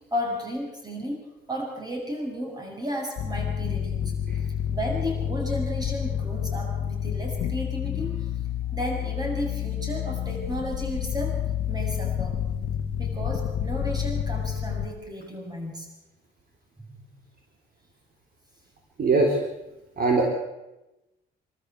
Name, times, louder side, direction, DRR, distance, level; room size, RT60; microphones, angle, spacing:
voice 1, 0.1-4.2 4.7-8.3 8.7-11.4 11.7-12.4 13.0-15.9 16.8-16.9, equal, 20° right, 1 dB, 7.8 m, -33 dB
sound 1, 3.2-14.9, left 9 dB, 80° left, 1.4 m, -29 dB
voice 2, 19.0-19.4 20.0-20.3, right 3 dB, 45° right, 1 dB, 3.9 m, -21 dB
25.5 x 13.5 x 8.4 m, 1.0 s
cardioid pair, 90°, 20 cm